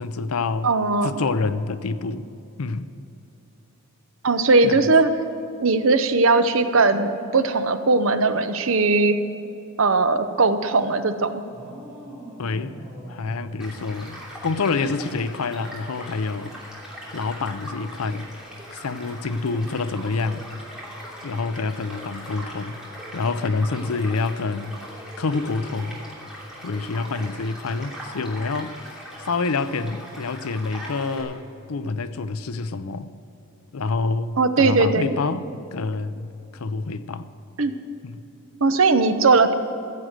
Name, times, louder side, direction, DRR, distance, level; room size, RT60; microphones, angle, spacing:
voice 1, 0.0-0.7 1.0-2.3 2.6-2.9 4.6-4.8 12.4-12.7 13.1-16.6 17.1-18.4 18.7-20.5 21.2-22.8 23.1-24.8 25.2-26.1 26.6-28.7 29.2-33.1 33.7-37.3 38.0-38.2, left 4 dB, 80° left, 0.6 m, -27 dB
voice 2, 0.6-1.1 4.2-5.1 5.6-9.2 9.8-11.4 34.4-35.1 37.6-37.7 38.6-39.5, right 3 dB, 65° right, 0.8 m, -19 dB
sound 1, 11.5-14.6, equal, 35° right, 2.7 m, -42 dB
Child speech kid speaking / Stream / Car passing by, 13.6-31.2, equal, 5° right, 2.9 m, -40 dB
15.0 x 7.6 x 8.0 m
head